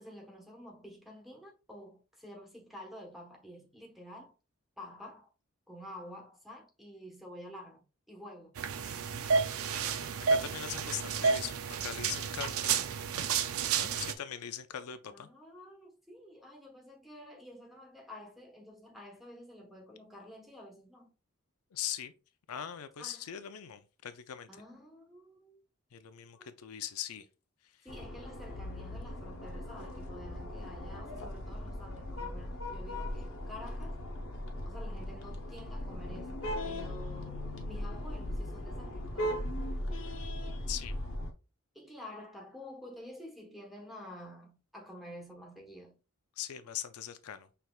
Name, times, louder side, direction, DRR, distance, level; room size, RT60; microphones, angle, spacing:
voice 1, 0.0-4.3 4.8-5.3 5.7-7.8 8.1-8.6 15.1-21.1 23.0-23.2 24.5-25.6 26.3-26.5 27.8-34.0 34.6-39.5 41.7-46.0, left 1 dB, ahead, 1.1 m, -49 dB
sound 1, 8.6-14.1, right 5 dB, 75° right, 0.5 m, -31 dB
voice 2, 9.4-9.8 10.3-13.1 13.8-15.3 21.7-22.1 22.5-24.5 25.9-27.3 40.7-40.9 46.4-47.5, left 10 dB, 85° left, 0.5 m, -41 dB
sound 2, 27.9-41.3, left 1 dB, 65° left, 0.9 m, -38 dB
5.8 x 3.3 x 2.3 m
head